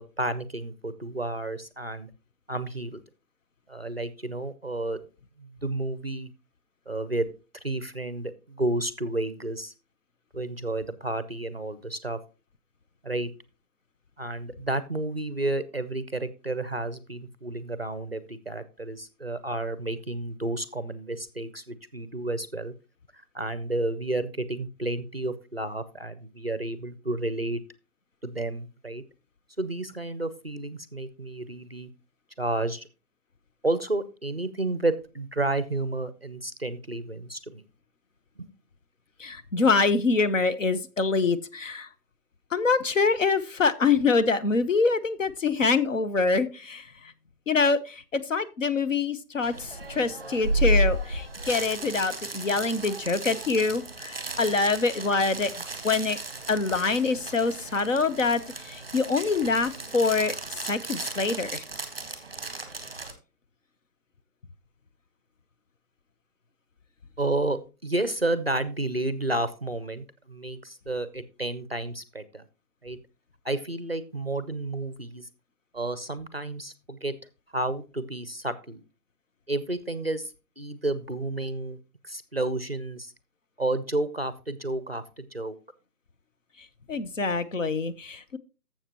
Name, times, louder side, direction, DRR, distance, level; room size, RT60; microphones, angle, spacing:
voice 1, 0.0-2.1 2.5-3.0 3.7-5.0 5.4-6.3 6.9-7.3 7.6-9.7 10.3-12.2 13.0-13.3 14.2-22.7 23.1-27.6 28.2-29.0 29.6-31.9 32.4-32.9 33.6-37.6 38.4-38.5 67.2-72.4 72.8-73.0 73.4-75.3 75.7-77.1 77.5-78.8 79.5-81.8 82.0-83.1 83.6-85.6, right 2 dB, 40° right, 13 dB, 0.5 m, -31 dB
voice 2, 39.2-41.9 42.5-46.8 47.5-47.8 48.1-49.5 49.9-55.5 55.8-56.2 56.5-58.4 58.7-60.3 60.7-61.6 86.9-88.4, left 4 dB, 55° left, 12 dB, 0.8 m, -25 dB
sound 1, 49.4-63.1, right 1 dB, 15° right, 0.9 m, -33 dB
12.0 x 7.3 x 2.9 m, 0.32 s
hypercardioid pair, 175°, 47 cm